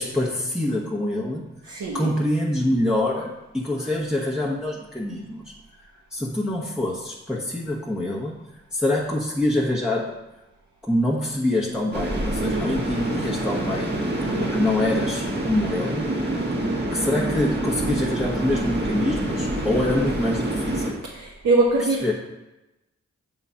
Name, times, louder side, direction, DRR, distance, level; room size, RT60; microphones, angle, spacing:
voice 1, 0.0-1.5 1.9-5.5 6.1-8.4 8.7-10.2 10.8-13.9 14.4-16.1 16.7-21.0 22.0-22.1, left 1 dB, 5° right, -5 dB, 1.1 m, -25 dB
voice 2, 1.7-2.1 12.4-12.7 14.2-14.6 21.0-22.0, right 3 dB, 75° right, -3 dB, 1.1 m, -23 dB
sound 1, 11.9-20.9, right 1 dB, 35° right, 1.8 m, -26 dB
7.2 x 3.9 x 5.7 m, 1.0 s
cardioid pair, 45°, 30 cm